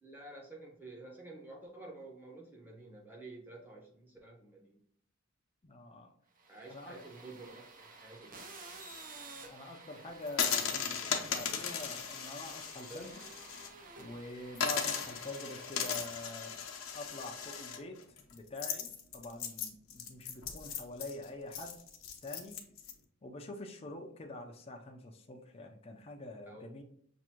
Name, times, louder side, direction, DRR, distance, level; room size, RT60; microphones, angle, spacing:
voice 1, 0.0-4.8 6.5-8.4 26.5-26.8, right 2 dB, 10° right, -2 dB, 0.9 m, -50 dB
voice 2, 5.6-6.1 6.7-7.0 9.5-13.2 14.0-16.6 16.9-18.0 18.3-21.8 22.2-22.6 23.2-26.8, left 2 dB, 30° left, 2 dB, 0.5 m, -45 dB
sound 1, 6.4-16.6, right 3 dB, 40° right, 0.7 m, -52 dB
sound 2, 10.3-13.7 14.0-14.1 14.5-22.9, left 7 dB, 90° left, 0.7 m, -37 dB
6.0 x 2.6 x 2.9 m, 0.65 s
head